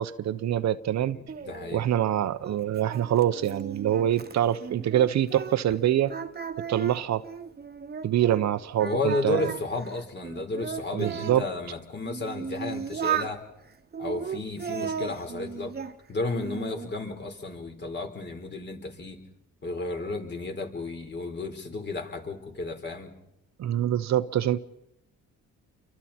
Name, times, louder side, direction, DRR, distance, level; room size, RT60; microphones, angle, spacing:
voice 1, 0.0-1.2 1.7-6.1 6.7-7.2 8.0-9.5 10.9-11.4 23.6-24.6, right 11 dB, 65° right, 0.9 m, -25 dB
voice 2, 1.1-1.8 8.8-13.4 14.0-15.7 16.1-19.2 19.6-23.1, left 2 dB, 35° left, 4.4 m, -33 dB
Singing, 1.3-5.8 6.1-8.4 8.8-11.4 12.0-13.3 13.9-15.9 16.3-16.9, right 7 dB, 35° right, 1.4 m, -35 dB
29.5 x 24.0 x 4.4 m
cardioid pair, 90°, 30 cm